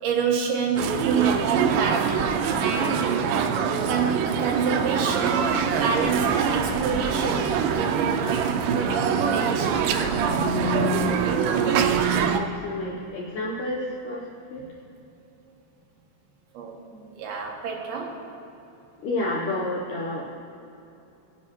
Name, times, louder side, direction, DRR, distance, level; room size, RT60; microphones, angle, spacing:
voice 1, 0.0-2.3 2.6-3.0 3.9-9.9 14.6-14.7 16.5-16.8 17.1-18.2, right 6 dB, 75° right, 0 dB, 2.6 m, -28 dB
sound 1, 0.8-12.4, right 6 dB, 90° right, 2.0 m, -24 dB
voice 2, 11.5-14.6 16.9-17.2 19.0-20.4, left 2 dB, 75° left, -3 dB, 1.9 m, -31 dB
17.5 x 9.9 x 2.9 m, 2.9 s
omnidirectional pair, 4.8 m